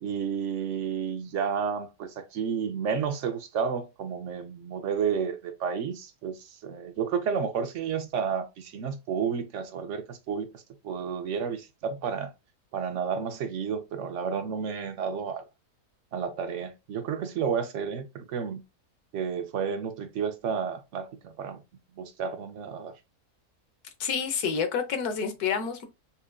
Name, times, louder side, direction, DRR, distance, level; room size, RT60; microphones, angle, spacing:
voice 1, 0.0-12.3 12.7-15.4 16.1-18.6 19.1-21.6 22.0-22.9, right 6 dB, 65° right, 0.8 m, -31 dB
voice 2, 24.0-25.9, left 6 dB, 85° left, 1.3 m, -28 dB
5.5 x 2.5 x 2.2 m
omnidirectional pair, 1.6 m